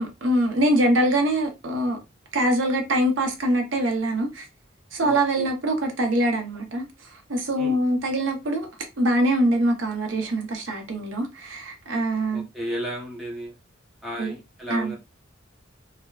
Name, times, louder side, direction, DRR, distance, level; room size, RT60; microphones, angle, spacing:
voice 1, 0.0-2.0 2.3-4.4 4.9-6.9 7.3-8.7 9.0-12.5 14.2-14.3 14.7-14.9, right 1 dB, 70° right, 0.7 m, -23 dB
voice 2, 5.0-5.5 7.5-7.8 12.3-13.5 14.0-15.0, equal, ahead, 0.9 m, -34 dB
3.2 x 2.1 x 2.3 m
head